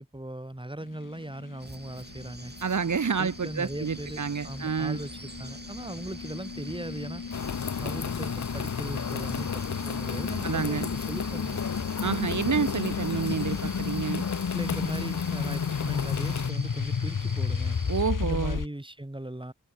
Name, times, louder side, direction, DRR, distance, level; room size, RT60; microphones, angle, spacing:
voice 1, 0.0-2.5 3.2-7.2 7.8-11.6 14.5-17.8 18.2-19.5, right 1 dB, 15° right, 5.4 m, -38 dB
sound 1, 0.8-18.7, left 6 dB, 90° left, 2.9 m, -34 dB
sound 2, 1.6-18.0, right 2 dB, 30° right, 7.0 m, -45 dB
voice 2, 2.6-5.0 10.4-10.9 12.0-14.2 17.9-18.6, right 6 dB, 70° right, 1.6 m, -29 dB
sound 3, 7.3-16.5, left 7 dB, 60° left, 0.8 m, -34 dB
cardioid pair, 45°, 31 cm